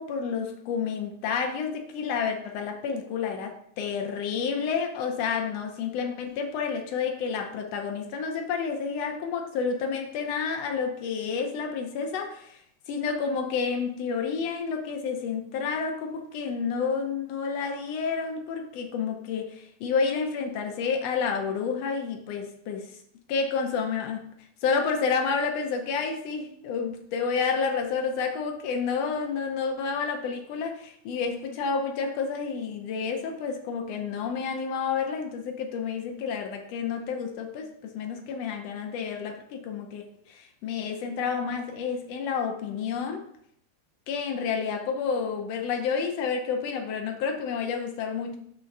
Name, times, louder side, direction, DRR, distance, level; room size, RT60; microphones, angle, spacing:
voice 1, 0.0-12.6 12.9-23.0 23.3-24.3 24.6-43.3 44.1-48.4, left 5 dB, 70° left, 4 dB, 1.8 m, -30 dB
6.5 x 3.7 x 5.8 m, 0.69 s
omnidirectional pair, 3.4 m